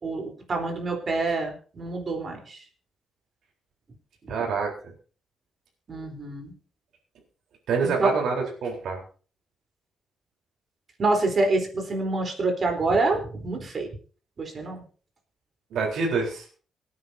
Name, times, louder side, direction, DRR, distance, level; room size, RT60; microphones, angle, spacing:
voice 1, 0.0-2.6 5.9-6.5 7.8-8.1 11.0-13.9 14.4-14.8, right 3 dB, 40° right, 3 dB, 3.9 m, -27 dB
voice 2, 4.3-4.7 7.7-9.0 15.7-16.4, right 4 dB, 80° right, 0 dB, 4.1 m, -26 dB
24.5 x 9.5 x 2.8 m, 0.40 s
cardioid pair, 120°, 0 cm